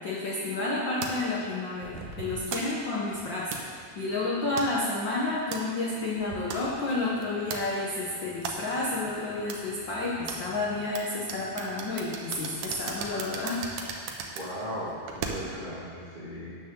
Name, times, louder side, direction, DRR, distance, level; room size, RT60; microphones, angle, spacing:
voice 1, 0.0-13.6, left 2 dB, 60° left, -4 dB, 1.3 m, -30 dB
sound 1, 1.0-15.7, right 5 dB, 70° right, 2.1 m, -40 dB
voice 2, 14.3-16.5, equal, 20° right, -8 dB, 1.6 m, -37 dB
12.5 x 9.3 x 3.7 m, 2.1 s
omnidirectional pair, 3.5 m